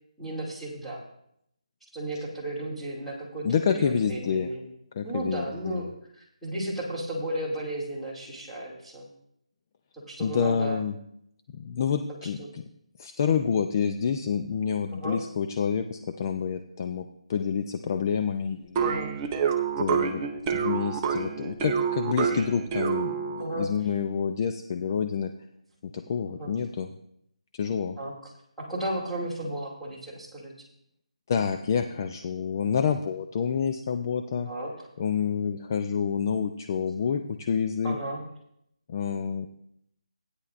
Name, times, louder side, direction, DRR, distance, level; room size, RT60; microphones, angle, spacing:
voice 1, 0.2-1.0 1.9-3.5 3.7-4.7 5.0-5.9 6.2-9.1 9.9-10.8 12.4-12.5 14.9-15.2 18.8-19.3 23.4-23.7 26.4-26.5 28.0-28.1 28.6-30.5 34.5-34.9 37.8-38.2, right 1 dB, ahead, -9 dB, 2.4 m, -34 dB
voice 2, 3.4-4.5 4.9-5.9 10.2-11.0 11.6-12.6 13.0-18.9 19.8-20.2 20.5-25.3 25.8-26.9 27.5-28.0 31.3-34.5 35.0-38.0 38.9-39.5, left 7 dB, 30° left, 7 dB, 0.5 m, -28 dB
sound 1, 18.8-23.5, right 7 dB, 15° right, 0.7 m, -28 dB
16.0 x 9.8 x 2.5 m, 0.73 s
figure-of-eight pair, 165°, 4 cm